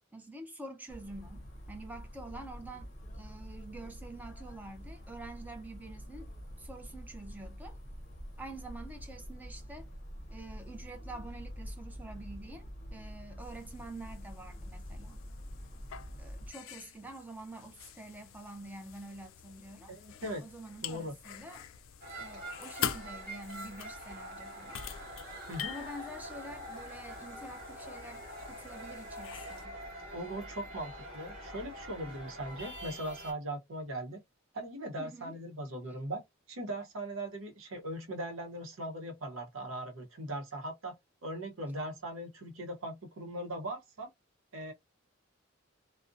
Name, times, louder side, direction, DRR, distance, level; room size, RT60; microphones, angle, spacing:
voice 1, 0.1-6.3 6.6-7.8 8.4-9.9 10.3-15.2 16.2-20.0 20.4-21.7 22.2-24.8 25.6-29.8 35.0-35.4, right 2 dB, 10° right, 0.4 m, -47 dB
sound 1, 0.9-16.5, equal, 35° left, 0.6 m, -46 dB
sound 2, 13.4-29.7, left 9 dB, 85° left, 0.3 m, -45 dB
voice 2, 19.9-20.4 20.8-21.1 25.5-25.7 30.1-34.2 34.5-36.2 36.5-40.9 41.2-44.1 44.5-44.7, right 1 dB, 85° right, 0.7 m, -39 dB
sound 3, 22.0-33.3, equal, 45° right, 1.0 m, -45 dB
2.5 x 2.0 x 2.4 m
head